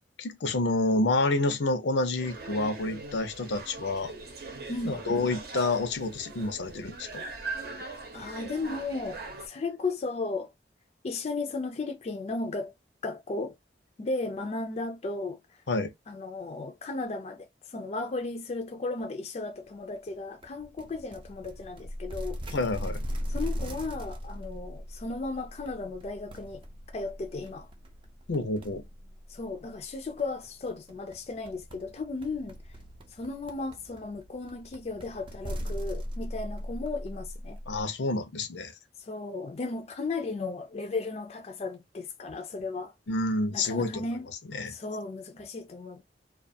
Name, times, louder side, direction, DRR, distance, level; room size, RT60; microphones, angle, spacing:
voice 1, 0.2-4.1 4.9-7.2 15.7-15.9 22.5-23.0 28.3-28.9 37.7-38.7 43.1-44.1 44.5-44.7, left 2 dB, 90° left, 0.6 m, -28 dB
sound 1, 2.2-9.5, right 3 dB, 60° right, 0.7 m, -41 dB
voice 2, 4.7-5.0 7.7-10.5 11.0-12.7 13.0-13.5 14.0-15.4 16.1-22.4 23.3-26.6 26.9-27.7 29.3-32.6 33.1-37.6 39.0-42.9 43.5-44.3 44.7-46.0, left 3 dB, 35° left, 0.4 m, -35 dB
sound 2, 20.4-37.8, equal, 30° right, 0.4 m, -39 dB
2.4 x 2.3 x 2.5 m
head